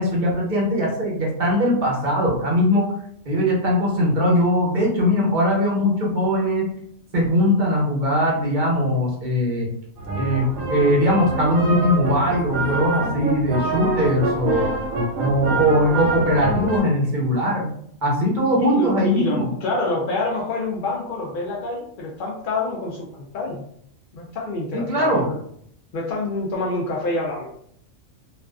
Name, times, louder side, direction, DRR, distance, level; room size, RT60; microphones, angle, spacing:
voice 1, 0.0-2.9 3.2-6.7 7.1-9.7 10.1-14.7 15.2-17.7 18.0-19.5 24.7-25.3, equal, 40° right, -4 dB, 0.8 m, -20 dB
sound 1, 10.0-16.8, right 2 dB, 80° right, 1.1 m, -26 dB
voice 2, 18.6-23.7 24.1-25.4 25.9-27.5, left 2 dB, 85° left, -2 dB, 0.4 m, -27 dB
2.4 x 2.4 x 2.3 m, 0.67 s
omnidirectional pair, 1.4 m